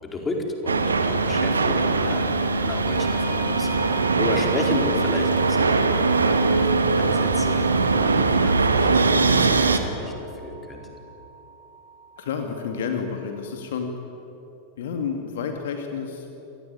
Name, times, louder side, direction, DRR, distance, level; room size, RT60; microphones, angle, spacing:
voice 1, 0.0-11.0, left 2 dB, 20° left, 2 dB, 4.4 m, -33 dB
sound 1, 0.7-9.8, right 3 dB, 75° right, 1.8 m, -21 dB
sound 2, 2.9-13.5, right 4 dB, 40° right, 7.0 m, -42 dB
voice 2, 12.2-13.9 14.8-16.3, left 6 dB, 60° left, 4 dB, 2.4 m, -30 dB
28.0 x 19.0 x 9.9 m, 3.0 s
figure-of-eight pair, 90°, 0 cm